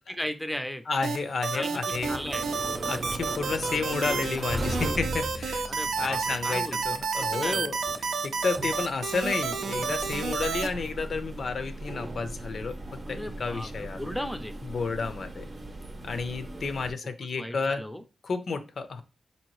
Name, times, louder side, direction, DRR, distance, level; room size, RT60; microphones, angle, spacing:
voice 1, 0.1-0.8 1.5-2.5 5.7-7.7 13.1-14.5 17.3-18.0, equal, 5° left, 8 dB, 0.5 m, -36 dB
voice 2, 0.9-2.2 2.8-5.6 6.0-14.0 14.6-15.5 16.0-17.8 18.2-19.0, left 4 dB, 60° left, 9 dB, 0.5 m, -31 dB
sound 1, 1.0-10.7, right 5 dB, 85° right, 0.5 m, -30 dB
sound 2, 1.9-16.9, right 1 dB, 30° right, 0.7 m, -38 dB
4.1 x 2.7 x 3.0 m, 0.28 s
wide cardioid pair, 95°, 0 cm